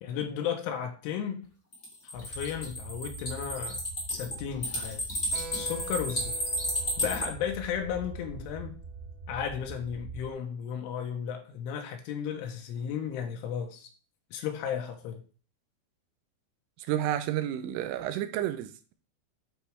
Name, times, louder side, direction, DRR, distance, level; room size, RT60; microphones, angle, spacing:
voice 1, 0.0-1.5 2.0-3.8 4.1-5.2 5.5-6.4 7.0-8.8 9.3-13.9 14.3-15.2, left 8 dB, 85° left, 3.3 m, -34 dB
sound 1, 1.7-7.3, equal, 55° left, 0.8 m, -32 dB
sound 2, 2.1-10.3, right 2 dB, 25° right, 1.3 m, -44 dB
Keyboard (musical), 5.3-9.4, right 3 dB, 65° right, 2.8 m, -47 dB
voice 2, 16.8-18.9, right 12 dB, 90° right, 3.2 m, -31 dB
11.5 x 4.6 x 3.4 m
omnidirectional pair, 5.7 m